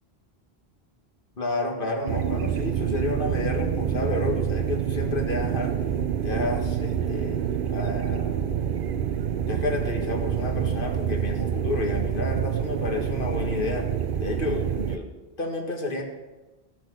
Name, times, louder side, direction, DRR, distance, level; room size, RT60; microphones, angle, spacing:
voice 1, 1.4-5.8 6.2-7.4 7.7-8.5 9.5-13.9 14.2-15.1 15.4-16.0, left 2 dB, 55° left, 2 dB, 2.0 m, -30 dB
sound 1, 2.1-15.0, right 8 dB, 60° right, 0.8 m, -27 dB
17.0 x 6.2 x 6.2 m, 1.1 s
omnidirectional pair, 1.1 m